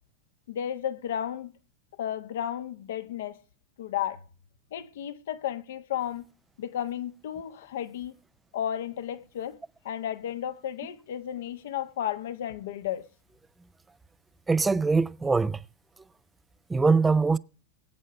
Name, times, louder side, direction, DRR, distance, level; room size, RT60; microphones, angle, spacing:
voice 1, 0.5-1.5 2.0-3.4 3.8-4.2 4.7-6.2 6.6-8.2 8.5-9.6 9.8-13.0, left 10 dB, 60° left, 1.1 m, -33 dB
voice 2, 14.5-15.6 16.7-17.4, right 4 dB, 10° right, 0.5 m, -22 dB
21.5 x 8.6 x 3.5 m
figure-of-eight pair, 90°, 0 cm